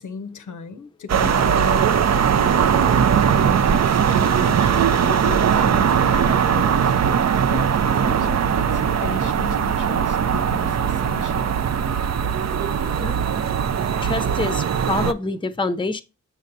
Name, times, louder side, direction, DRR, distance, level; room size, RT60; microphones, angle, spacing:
voice 1, 0.0-2.9 3.4-6.9 7.5-11.6, left 5 dB, 90° left, 0.6 m, -36 dB
sound 1, 1.1-15.1, right 7 dB, 60° right, 0.4 m, -20 dB
voice 2, 14.0-16.0, left 3 dB, 15° left, 0.5 m, -26 dB
7.3 x 5.4 x 2.6 m
wide cardioid pair, 80°, 30 cm